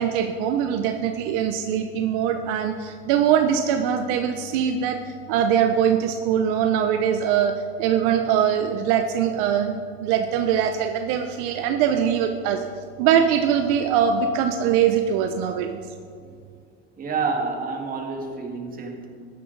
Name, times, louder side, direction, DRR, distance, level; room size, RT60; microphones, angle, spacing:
voice 1, 0.0-5.0 5.3-12.6 13.0-15.8, right 8 dB, 65° right, 6 dB, 0.8 m, -22 dB
voice 2, 17.0-19.1, right 4 dB, 30° right, 2 dB, 1.9 m, -28 dB
13.5 x 10.5 x 4.0 m, 2.2 s
supercardioid pair, 120°, 31 cm